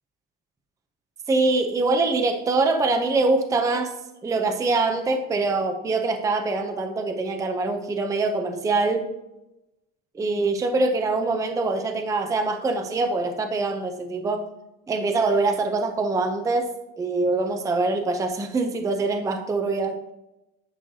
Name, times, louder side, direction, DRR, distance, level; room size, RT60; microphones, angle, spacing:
voice 1, 1.3-3.9 4.2-9.1 10.1-14.5 14.9-20.0, right 3 dB, 10° right, 6 dB, 0.5 m, -24 dB
10.0 x 6.4 x 2.7 m, 0.95 s
cardioid pair, 155°, 34 cm